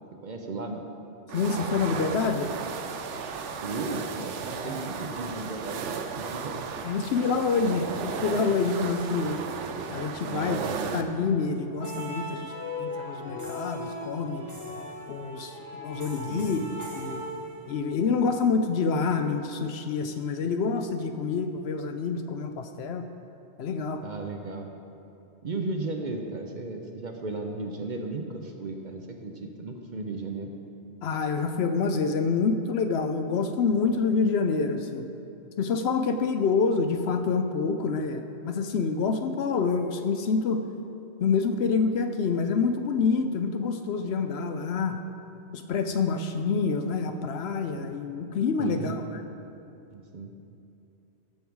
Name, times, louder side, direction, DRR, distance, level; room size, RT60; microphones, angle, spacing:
voice 1, 0.2-0.8 3.6-5.8 6.2-6.6 10.2-10.9 16.2-16.6 24.0-24.7 25.4-30.5 48.6-49.0 49.9-50.3, right 3 dB, 50° right, 3 dB, 0.7 m, -35 dB
voice 2, 1.3-2.5 4.6-4.8 6.8-9.4 9.9-10.6 10.9-12.5 12.8-14.5 15.1-16.6 17.0-17.2 17.7-23.0 23.6-24.1 31.0-35.1 35.6-40.6 41.2-45.0 45.5-49.0, left 5 dB, 65° left, 7 dB, 0.8 m, -27 dB
sound 1, 1.3-11.0, right 6 dB, 85° right, 1.0 m, -35 dB
sound 2, 11.7-18.0, left 1 dB, 15° right, 1.2 m, -38 dB
14.0 x 5.5 x 4.6 m, 2.7 s
omnidirectional pair, 1.2 m